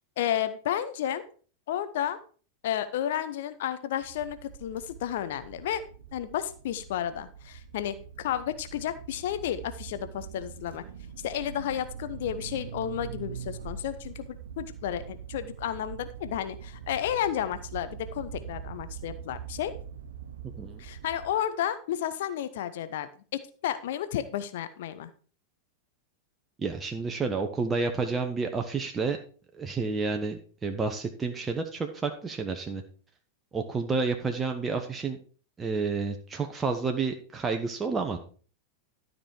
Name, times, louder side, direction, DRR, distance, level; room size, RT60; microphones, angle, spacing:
voice 1, 0.2-1.2 1.7-2.2 2.6-5.8 6.1-10.8 11.2-19.7 20.8-25.1, left 10 dB, 55° left, 12 dB, 0.7 m, -32 dB
sound 1, 4.0-21.4, right 7 dB, 65° right, 0.8 m, -43 dB
voice 2, 26.6-29.2 29.5-32.8 33.5-35.2 35.6-38.2, right 4 dB, 15° right, 4 dB, 1.0 m, -30 dB
12.5 x 5.4 x 4.6 m, 0.41 s
figure-of-eight pair, 90°, 0 cm